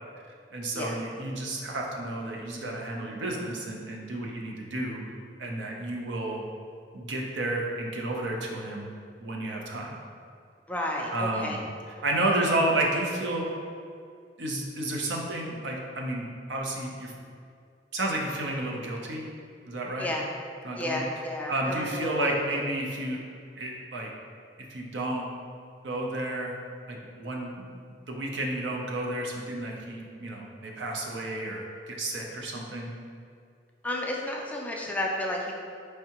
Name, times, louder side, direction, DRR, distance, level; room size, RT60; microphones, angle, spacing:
voice 1, 0.5-5.0 5.4-6.4 6.9-8.9 9.2-10.0 11.1-11.6 12.0-13.5 14.4-17.1 17.9-19.2 19.7-20.1 20.6-21.0 21.5-23.2 23.6-24.1 24.7-25.3 25.8-26.6 26.9-27.7 28.1-32.9, right 1 dB, 75° right, -1 dB, 0.6 m, -31 dB
voice 2, 10.7-11.6 12.3-12.5 20.0-20.3 20.8-22.6 33.8-35.5, left 1 dB, 10° left, -1 dB, 0.4 m, -32 dB
4.6 x 3.3 x 2.9 m, 2.3 s
head